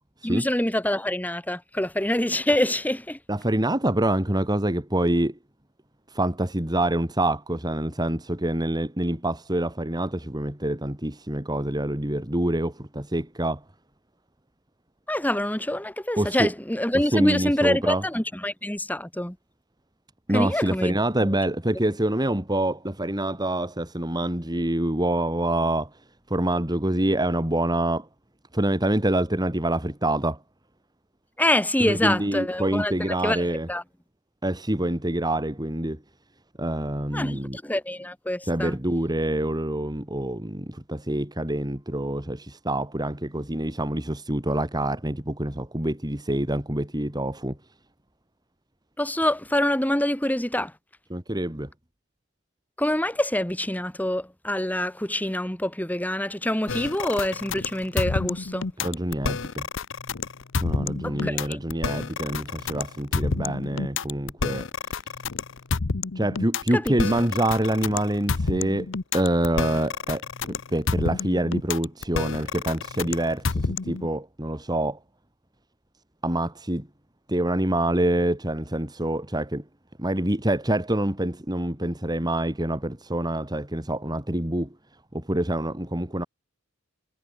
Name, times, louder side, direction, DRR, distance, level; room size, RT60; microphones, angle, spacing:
voice 1, 0.2-3.2 15.1-19.4 20.3-20.9 21.2-21.3 31.4-33.8 37.1-38.8 49.0-50.7 52.8-58.7 61.0-61.6 66.7-66.9, left 1 dB, 10° left, 2.2 m, -26 dB
voice 2, 3.3-5.4 6.1-13.6 16.2-16.5 16.9-18.0 20.3-25.9 26.3-28.1 28.5-30.4 31.8-33.7 34.4-36.0 36.6-37.6 38.5-47.6 51.1-51.7 58.8-59.7 60.6-64.7 66.2-68.9 69.1-70.3 70.7-75.0 76.2-76.9 77.3-79.6 80.0-84.7 85.1-86.2, right 1 dB, 20° right, 2.6 m, -26 dB
sound 1, 56.7-74.1, left 4 dB, 60° left, 0.8 m, -29 dB
head